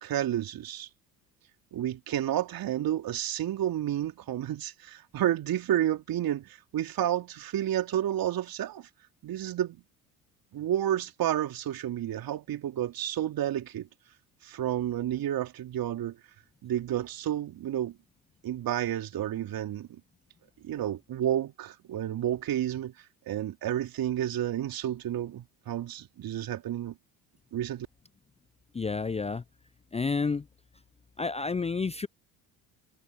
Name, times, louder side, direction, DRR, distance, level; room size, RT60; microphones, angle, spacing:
voice 1, 0.0-0.9 1.7-8.9 9.2-9.8 10.5-13.9 14.4-16.2 16.6-18.0 18.4-20.0 20.6-22.9 23.3-26.9 27.5-27.9, right 11 dB, 50° right, 3.3 m, -30 dB
voice 2, 28.7-29.4 29.9-30.4 31.2-32.1, left 4 dB, 15° left, 0.6 m, -30 dB
hypercardioid pair, 60°, 43 cm